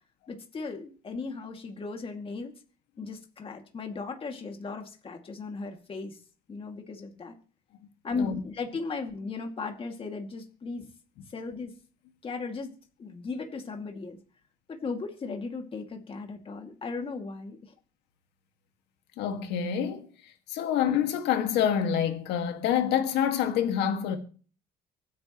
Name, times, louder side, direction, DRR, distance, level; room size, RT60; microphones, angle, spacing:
voice 1, 0.3-2.5 3.0-6.2 6.5-7.3 8.0-10.8 11.3-11.7 12.2-14.2 14.7-17.7, left 4 dB, 35° left, 2.3 m, -36 dB
voice 2, 19.2-24.2, left 9 dB, 85° left, 1.9 m, -27 dB
24.5 x 9.5 x 3.0 m
cardioid pair, 110°, 17 cm